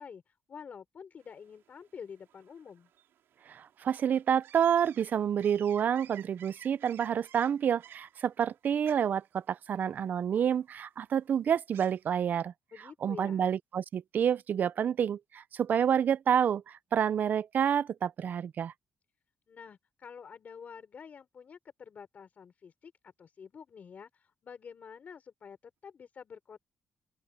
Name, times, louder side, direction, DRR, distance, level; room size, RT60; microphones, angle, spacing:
voice 1, 0.0-2.9 12.7-13.4 19.5-26.6, left 6 dB, 40° left, 5.0 m, -48 dB
sound 1, 1.2-12.2, right 11 dB, 80° right, 3.7 m, -55 dB
voice 2, 3.5-12.5 13.0-18.7, right 8 dB, 50° right, 0.5 m, -28 dB
open air
cardioid pair, 140°, 4 cm